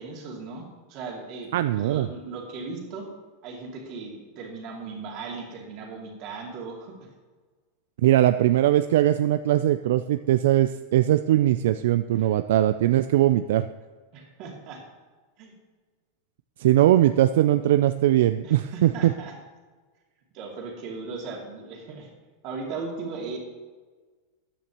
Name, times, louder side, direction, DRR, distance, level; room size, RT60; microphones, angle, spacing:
voice 1, 0.0-3.1 3.4-7.0 12.2-12.3 14.1-14.8 15.4-15.6 18.4-19.3 20.3-22.1 22.4-23.4, right 4 dB, 35° right, -1 dB, 2.4 m, -37 dB
voice 2, 1.5-2.1 8.0-13.7 16.6-19.1, right 13 dB, 65° right, 10 dB, 0.3 m, -20 dB
14.0 x 9.8 x 3.0 m, 1.4 s
supercardioid pair, 175°, 0 cm